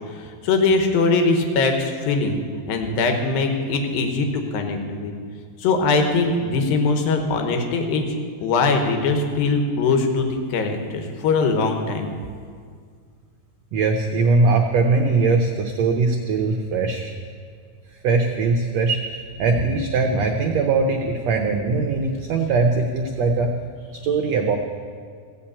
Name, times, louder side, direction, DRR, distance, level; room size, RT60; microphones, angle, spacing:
voice 1, 0.1-2.4 2.7-5.1 5.6-8.1 8.4-12.1, left 3 dB, 85° left, 4 dB, 3.0 m, -21 dB
voice 2, 13.7-17.1 18.0-23.5 23.9-24.6, right 3 dB, 90° right, 3 dB, 1.4 m, -21 dB
15.5 x 5.8 x 8.6 m, 2.1 s
omnidirectional pair, 4.0 m